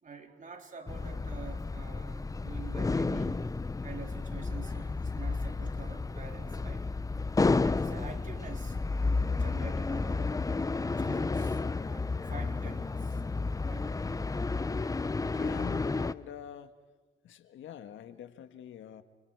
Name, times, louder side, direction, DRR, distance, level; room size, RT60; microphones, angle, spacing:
voice 1, 0.0-3.4 3.8-6.8 7.5-10.4 11.0-11.6 11.9-13.2 13.7-14.1, right 5 dB, 40° right, 4 dB, 3.7 m, -47 dB
sound 1, 0.9-16.1, left 3 dB, 15° left, 0.7 m, -31 dB
voice 2, 15.3-16.7 17.2-19.0, left 10 dB, 75° left, 9 dB, 1.7 m, -44 dB
30.0 x 29.0 x 4.8 m, 1.4 s
cardioid pair, 90°, 20 cm